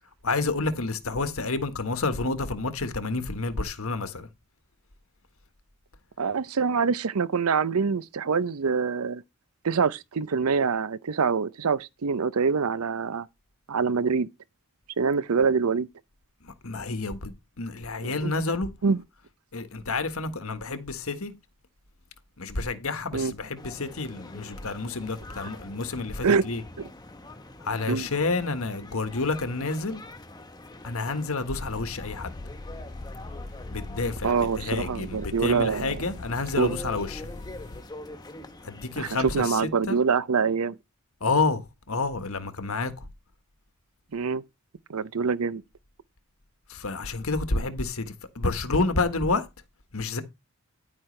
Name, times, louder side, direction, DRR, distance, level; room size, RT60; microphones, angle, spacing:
voice 1, 0.2-4.3 16.4-18.7 19.5-21.3 22.4-26.6 27.6-30.0 30.8-32.3 33.7-37.3 38.6-40.0 41.2-43.1 46.7-49.5 49.9-50.2, left 3 dB, 70° left, 1.4 m, -29 dB
voice 2, 6.2-9.2 9.6-13.3 13.7-14.3 15.0-15.9 18.0-18.3 18.8-19.0 23.1-23.3 26.2-26.4 27.9-28.1 34.2-36.0 36.6-36.8 39.0-40.8 44.1-44.4 44.9-45.6, right 5 dB, 80° right, 0.6 m, -25 dB
sound 1, 23.6-39.5, left 2 dB, 20° left, 1.1 m, -45 dB
sound 2, 31.5-37.8, left 2 dB, 35° left, 0.6 m, -41 dB
10.5 x 9.1 x 3.3 m
head